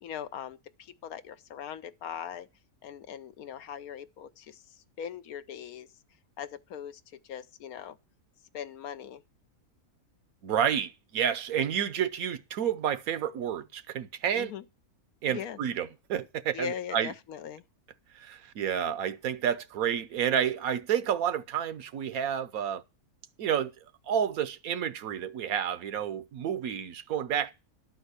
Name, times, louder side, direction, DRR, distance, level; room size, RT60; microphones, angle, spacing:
voice 1, 0.0-2.5 2.8-5.9 6.4-8.0 8.5-9.2 14.3-14.7 15.3-15.6 16.5-17.6, left 9 dB, 75° left, 1.2 m, -40 dB
voice 2, 10.4-14.5 15.2-17.1 18.1-22.8 23.4-23.7 24.1-27.5, right 9 dB, 70° right, 1.2 m, -30 dB
12.0 x 4.4 x 8.1 m
omnidirectional pair, 1.6 m